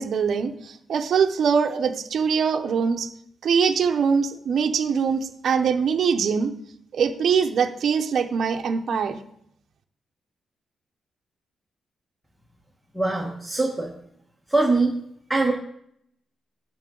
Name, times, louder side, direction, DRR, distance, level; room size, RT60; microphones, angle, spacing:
voice 1, 0.0-3.1 3.4-6.5 6.9-9.2, right 6 dB, 60° right, 5 dB, 0.7 m, -23 dB
voice 2, 12.9-13.9 14.5-14.9 15.3-15.5, right 3 dB, 5° right, -1 dB, 1.3 m, -22 dB
11.5 x 6.1 x 3.8 m, 0.72 s
cardioid pair, 125°, 0 cm